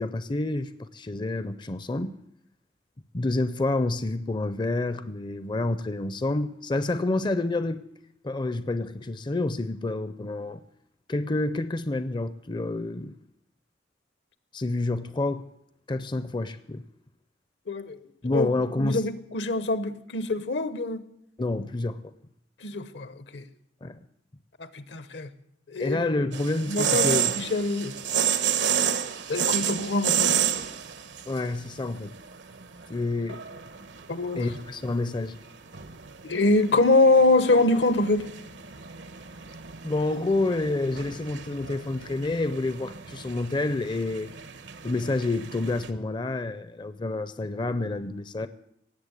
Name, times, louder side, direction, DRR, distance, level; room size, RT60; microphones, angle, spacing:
voice 1, 0.0-2.2 3.1-7.8 8.2-10.6 11.1-13.1 14.5-15.4 15.9-16.8 18.2-19.0 21.4-22.1 23.8-24.0 25.8-27.3 31.3-32.1 32.9-33.4 34.4-35.4 39.8-44.3 44.8-48.5, left 2 dB, 25° left, 0.5 m, -28 dB
voice 2, 17.7-18.0 18.3-18.5 18.8-21.0 22.6-23.4 24.6-25.3 25.7-26.0 26.7-27.1 27.3-27.9 29.3-30.4 34.1-34.4 36.2-38.3, left 2 dB, 75° left, 1.0 m, -24 dB
sound 1, 26.3-45.9, right 9 dB, 80° right, 1.1 m, -31 dB
18.0 x 7.9 x 8.1 m
head